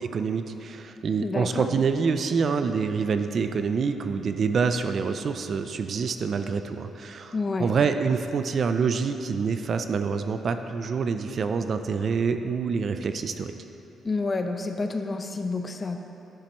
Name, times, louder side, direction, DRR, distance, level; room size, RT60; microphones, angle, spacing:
voice 1, 0.0-13.5, right 5 dB, 45° right, 8 dB, 0.4 m, -26 dB
voice 2, 1.2-1.7 7.3-7.7 14.0-16.0, left 3 dB, 30° left, 6 dB, 0.5 m, -29 dB
11.5 x 7.4 x 3.0 m, 2.9 s
cardioid pair, 120°, 0 cm